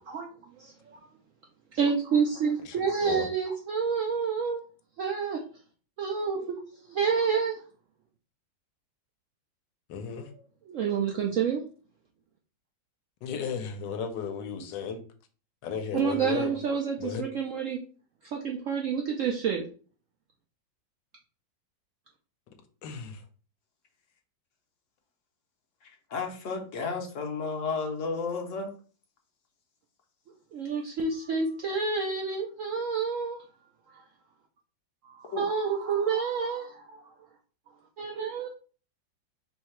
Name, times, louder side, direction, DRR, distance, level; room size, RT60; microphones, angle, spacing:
voice 1, 0.6-1.1 1.7-4.6 5.0-5.4 6.0-7.6 10.1-10.4 10.7-11.6 15.9-17.8 18.2-19.6 30.5-33.4 33.9-34.0 35.0-37.1 38.0-38.5, right 6 dB, 85° right, 1 dB, 0.6 m, -29 dB
voice 2, 9.9-10.3 13.2-15.0 15.6-16.6 17.0-17.2 22.8-23.2, left 6 dB, 75° left, 7 dB, 1.3 m, -34 dB
voice 3, 26.1-28.7 35.2-35.4, left 4 dB, 55° left, 2 dB, 0.9 m, -32 dB
3.4 x 2.7 x 4.4 m, 0.39 s
omnidirectional pair, 2.0 m